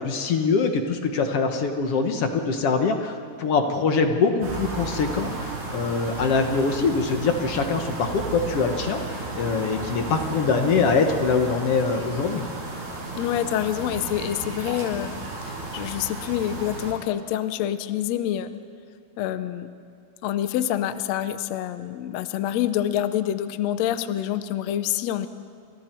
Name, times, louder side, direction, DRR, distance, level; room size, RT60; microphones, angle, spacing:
voice 1, 0.0-12.4, left 4 dB, 60° left, 5 dB, 1.6 m, -23 dB
sound 1, 4.4-16.9, right 3 dB, 80° right, 8.2 m, -34 dB
voice 2, 13.2-15.2 15.7-18.5 19.2-19.7 20.2-25.3, left 11 dB, 85° left, 11 dB, 1.5 m, -26 dB
29.5 x 28.0 x 4.5 m, 2.4 s
omnidirectional pair, 4.3 m